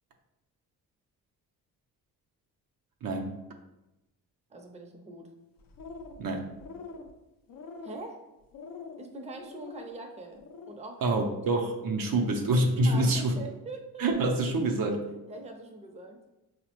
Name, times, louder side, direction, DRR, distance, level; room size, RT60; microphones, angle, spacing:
voice 1, 3.0-3.4 6.2-6.5 11.0-13.4 14.0-15.1, right 2 dB, 65° right, 3 dB, 0.6 m, -26 dB
voice 2, 4.5-5.3 7.8-8.2 9.0-10.4 10.7-11.4 12.8-14.0 15.2-16.2, right 2 dB, 20° right, 3 dB, 0.5 m, -42 dB
sound 1, 5.6-6.3 6.5-7.1 7.5-8.1 8.5-9.0 9.4-9.9 10.3-10.8, left 4 dB, 65° left, 0.5 m, -44 dB
4.5 x 2.1 x 2.9 m, 0.96 s
cardioid pair, 70°, 37 cm